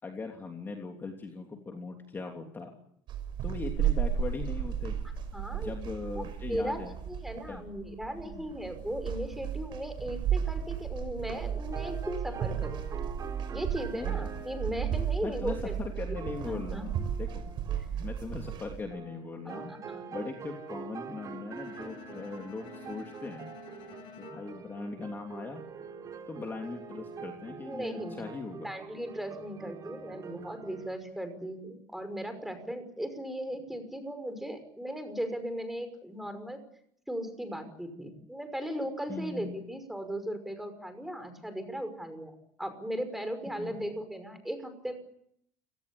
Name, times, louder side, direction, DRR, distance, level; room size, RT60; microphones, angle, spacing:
voice 1, 0.0-2.7 3.4-5.0 5.6-6.9 7.5-7.7 8.3-8.4 13.9-14.2 15.2-17.4 17.9-23.5 24.2-25.7 26.3-28.7 39.1-39.5 43.6-43.8, left 3 dB, 20° left, 2 dB, 3.1 m, -40 dB
sound 1, 3.1-18.8, right 8 dB, 50° right, 6.0 m, -34 dB
voice 2, 5.3-5.7 6.5-12.8 13.5-15.8 16.5-16.8 19.4-20.0 27.7-28.2 28.6-36.6 37.1-44.9, equal, ahead, 9 dB, 5.7 m, -37 dB
sound 2, 11.3-30.9, right 6 dB, 35° right, 4.1 m, -45 dB
Bowed string instrument, 21.5-25.7, left 8 dB, 60° left, 6.4 m, -52 dB
29.5 x 18.0 x 8.7 m, 0.71 s
cardioid pair, 130°, 10 cm